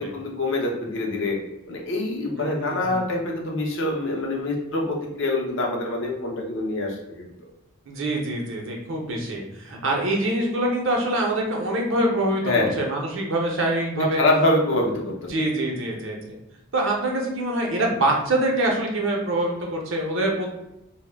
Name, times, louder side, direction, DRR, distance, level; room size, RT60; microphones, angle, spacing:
voice 1, 0.0-1.4 1.7-7.3 12.4-12.8 14.0-15.3, left 2 dB, 60° left, 0 dB, 0.5 m, -25 dB
voice 2, 2.4-3.0 7.9-14.2 15.3-16.4 16.7-20.5, right 1 dB, 60° right, 0 dB, 0.6 m, -25 dB
2.1 x 2.1 x 3.2 m, 0.85 s
head